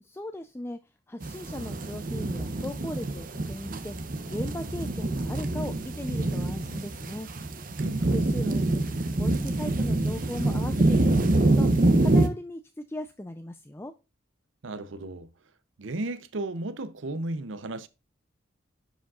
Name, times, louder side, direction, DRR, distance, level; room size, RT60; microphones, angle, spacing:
voice 1, 0.1-0.8 1.1-4.0 4.3-7.3 8.1-13.9, left 1 dB, 15° left, 0.5 m, -38 dB
sound 1, 1.2-12.3, right 2 dB, 45° right, 0.9 m, -26 dB
voice 2, 7.8-8.2 14.6-15.3 15.8-17.9, right 2 dB, 85° right, 0.7 m, -34 dB
11.5 x 5.1 x 2.4 m
head